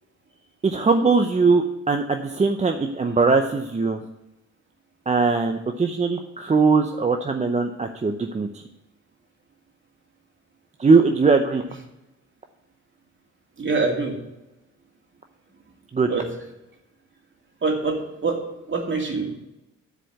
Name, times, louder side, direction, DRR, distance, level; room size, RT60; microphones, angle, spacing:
voice 1, 0.6-4.0 5.1-8.6 10.8-11.6 15.9-16.1, right 4 dB, 25° right, 5 dB, 0.7 m, -20 dB
voice 2, 13.6-14.2 16.1-16.3 17.6-19.3, right 4 dB, 40° right, 1 dB, 2.6 m, -25 dB
10.0 x 5.0 x 7.9 m, 0.95 s
cardioid pair, 90°, 30 cm